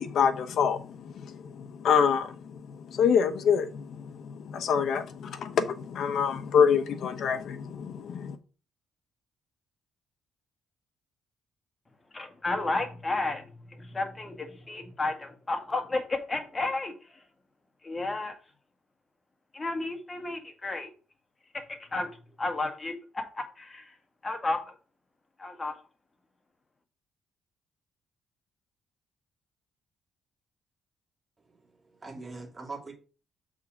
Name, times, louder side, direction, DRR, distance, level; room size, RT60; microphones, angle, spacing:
voice 1, 0.0-8.4, left 7 dB, 65° left, 1.0 m, -26 dB
voice 2, 12.1-17.2 17.8-18.4 19.5-20.9 21.5-23.9 24.2-24.8 25.4-25.8, left 2 dB, 25° left, 1.7 m, -32 dB
voice 3, 31.5-32.9, right 3 dB, 25° right, 2.5 m, -42 dB
7.1 x 3.7 x 5.1 m
cardioid pair, 90°, 0 cm